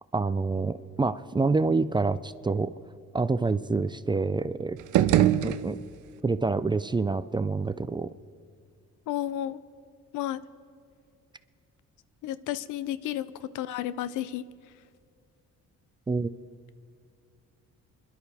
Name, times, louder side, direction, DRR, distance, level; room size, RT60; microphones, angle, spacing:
voice 1, 0.1-2.7 3.1-4.8 5.4-5.8 6.2-8.1 16.1-16.3, right 3 dB, 15° right, 14 dB, 0.4 m, -27 dB
sound 1, 4.8-6.2, right 12 dB, 80° right, 0.6 m, -24 dB
voice 2, 9.1-9.6 10.1-10.4 12.2-14.4, left 12 dB, 85° left, 16 dB, 0.6 m, -32 dB
26.0 x 11.5 x 3.5 m, 2.3 s
cardioid pair, 90°, 30 cm